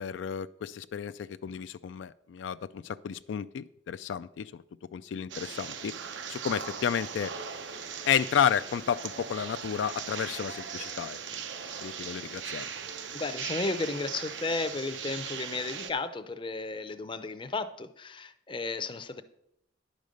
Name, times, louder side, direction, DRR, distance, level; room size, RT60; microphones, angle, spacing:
voice 1, 0.0-4.6 4.9-6.0 6.3-7.3 8.1-11.2 11.8-12.6, left 8 dB, 85° left, 13 dB, 0.3 m, -31 dB
sound 1, 5.3-15.9, right 7 dB, 90° right, 0.8 m, -39 dB
voice 2, 13.1-19.2, left 3 dB, 25° left, 11 dB, 0.5 m, -34 dB
10.5 x 5.3 x 6.4 m, 0.78 s
head